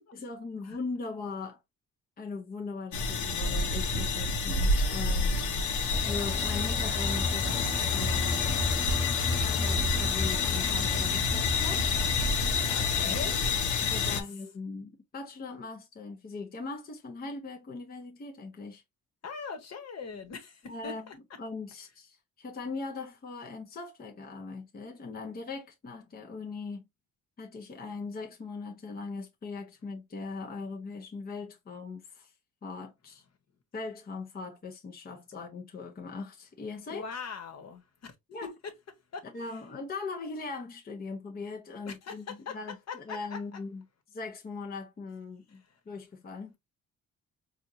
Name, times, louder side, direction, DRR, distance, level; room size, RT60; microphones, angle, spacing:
voice 1, 0.1-1.6 2.2-5.4 6.0-8.6 9.3-11.9 12.8-13.2 13.8-18.8 20.7-26.8 27.4-32.3 32.6-33.2 33.7-37.1 38.3-38.5 39.3-46.6, left 4 dB, 30° left, 0.8 m, -40 dB
sound 1, 2.9-14.2, left 4 dB, 80° left, 0.9 m, -28 dB
sound 2, 5.9-13.4, left 2 dB, ahead, 0.4 m, -34 dB
voice 2, 12.7-13.4 14.1-14.2 19.2-21.2 36.9-37.8 38.4-38.5 39.1-39.3 41.8-43.4, left 5 dB, 60° left, 1.2 m, -41 dB
4.4 x 2.5 x 2.5 m
cardioid pair, 90°, 30 cm